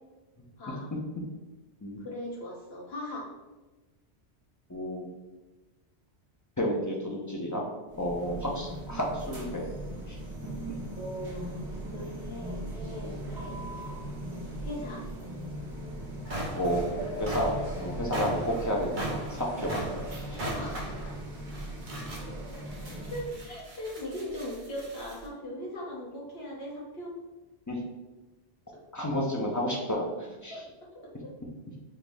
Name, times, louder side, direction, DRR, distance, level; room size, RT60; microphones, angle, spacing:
voice 1, 0.6-0.9 2.0-3.3 11.0-13.6 14.6-15.0 20.5-20.8 23.1-27.1 30.5-30.6 30.9-31.3, left 1 dB, 65° left, -4 dB, 1.1 m, -39 dB
voice 2, 4.7-5.1 6.6-7.6 8.0-9.7 10.1-10.2 16.5-16.8 17.2-17.5 17.8-19.8 20.3-20.5 27.7-27.8 28.9-30.5, equal, 30° left, -2 dB, 0.4 m, -31 dB
sound 1, 7.9-23.5, right 1 dB, 70° right, 1.4 m, -39 dB
sound 2, 15.5-15.6 16.0-25.3, right 1 dB, 50° right, 0.9 m, -39 dB
5.6 x 2.0 x 3.4 m, 1.1 s
omnidirectional pair, 1.2 m